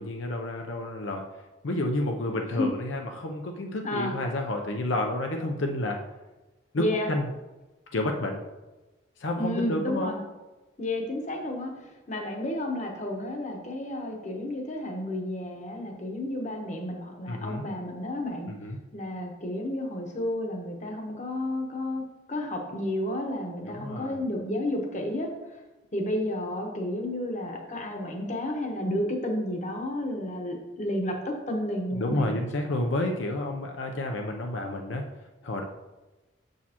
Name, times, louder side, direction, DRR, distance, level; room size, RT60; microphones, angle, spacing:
voice 1, 0.0-6.0 6.7-7.3 7.9-8.4 9.2-10.1 17.3-17.6 18.5-18.8 23.6-24.2 31.9-35.6, left 1 dB, 70° left, 2 dB, 0.6 m, -30 dB
voice 2, 6.8-7.1 9.4-10.2 10.8-11.7 12.1-18.5 18.9-22.0 22.3-25.3 25.9-32.4, left 1 dB, 35° left, 2 dB, 1.0 m, -31 dB
7.2 x 6.4 x 2.9 m, 1.1 s
head